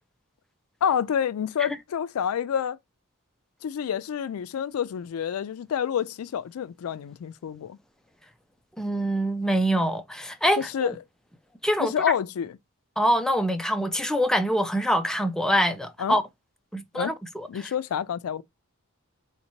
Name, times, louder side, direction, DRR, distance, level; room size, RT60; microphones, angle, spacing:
voice 1, 0.8-2.8 3.6-7.8 10.7-10.9 11.8-12.6 16.0-16.2 16.9-17.1 17.5-18.4, left 8 dB, 85° left, 0.3 m, -28 dB
voice 2, 8.8-10.9 11.6-11.9 13.0-16.2 16.7-17.7, equal, 5° left, 0.4 m, -25 dB
3.5 x 2.8 x 4.3 m
head